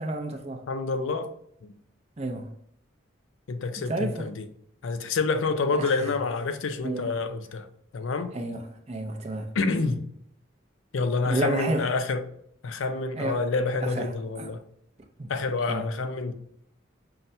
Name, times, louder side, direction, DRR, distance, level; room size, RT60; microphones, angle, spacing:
voice 1, 0.0-0.6 2.2-2.5 3.9-4.3 5.7-5.9 6.8-7.1 8.3-9.5 11.2-11.9 13.2-13.4 13.8-14.5 15.2-15.3 15.7-15.9, right 2 dB, 35° right, 0.5 m, -31 dB
voice 2, 0.7-1.3 1.6-1.7 3.5-4.5 4.8-7.7 7.9-8.3 9.5-10.0 10.9-12.2 12.6-14.6 15.3-16.3, left 3 dB, 80° left, 0.4 m, -28 dB
5.6 x 2.1 x 2.6 m
head